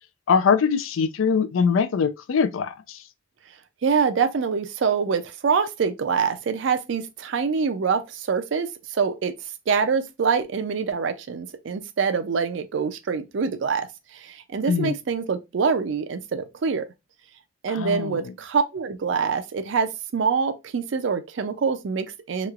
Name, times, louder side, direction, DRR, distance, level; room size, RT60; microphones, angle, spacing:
voice 1, 0.3-3.0 14.7-15.0 17.7-18.3, left 6 dB, 80° left, 0.4 m, -22 dB
voice 2, 3.8-9.3 9.7-16.9 17.6-22.5, right 5 dB, 65° right, 0.4 m, -25 dB
3.0 x 2.9 x 2.3 m
head